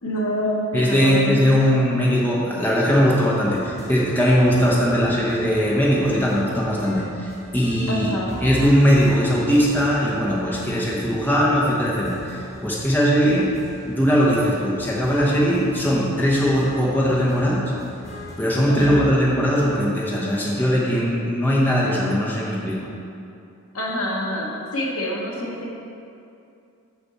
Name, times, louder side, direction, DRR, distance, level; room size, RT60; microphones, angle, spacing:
voice 1, 0.0-1.8 7.9-8.3 18.7-19.1 23.7-25.7, equal, 75° left, -3 dB, 1.3 m, -27 dB
voice 2, 0.7-8.1 8.4-13.5 13.9-17.7 18.4-22.9, equal, 10° left, -5 dB, 0.8 m, -20 dB
sound 1, 3.4-19.1, equal, 30° left, 1.4 m, -39 dB
6.9 x 6.0 x 4.1 m, 2.6 s
head